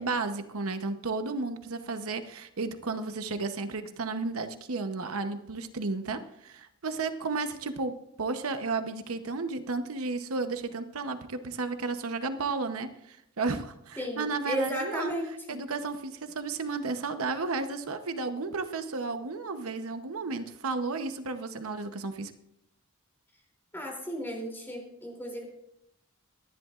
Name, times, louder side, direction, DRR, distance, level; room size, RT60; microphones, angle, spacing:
voice 1, 0.0-15.1 15.5-22.3, right 3 dB, 75° right, 8 dB, 0.9 m, -33 dB
voice 2, 14.0-15.6 23.7-25.4, equal, 10° left, -1 dB, 2.9 m, -34 dB
27.0 x 11.0 x 2.5 m, 0.79 s
head